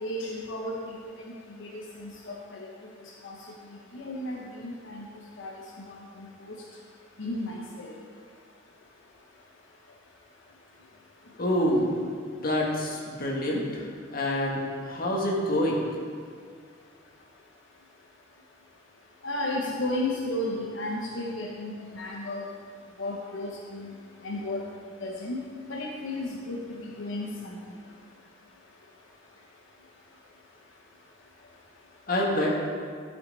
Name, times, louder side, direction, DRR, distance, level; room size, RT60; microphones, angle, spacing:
voice 1, 0.0-1.0 1.6-1.7 2.0-2.6 3.2-3.3 3.9-5.0 5.4-5.5 5.9-6.3 7.2-7.9 19.2-22.5 23.0-23.9 24.2-24.6 25.0-25.4 25.7-27.6, left 1 dB, 75° left, -2 dB, 0.9 m, -33 dB
voice 2, 11.4-12.0 12.3-13.8 14.1-15.9 32.1-32.6, left 1 dB, 50° left, -2 dB, 1.5 m, -27 dB
11.5 x 5.8 x 4.0 m, 2.1 s
head